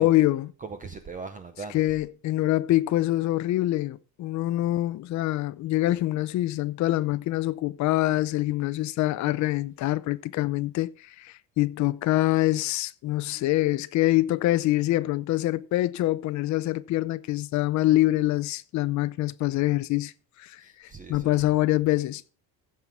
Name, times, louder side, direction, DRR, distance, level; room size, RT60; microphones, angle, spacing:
voice 1, 0.0-0.5 1.7-20.1 20.4-22.2, left 16 dB, 45° left, 0.5 m, -25 dB
voice 2, 0.6-1.9 20.6-21.4, right 4 dB, 20° right, 0.6 m, -39 dB
15.0 x 5.7 x 4.7 m
cardioid pair, 175°, 39 cm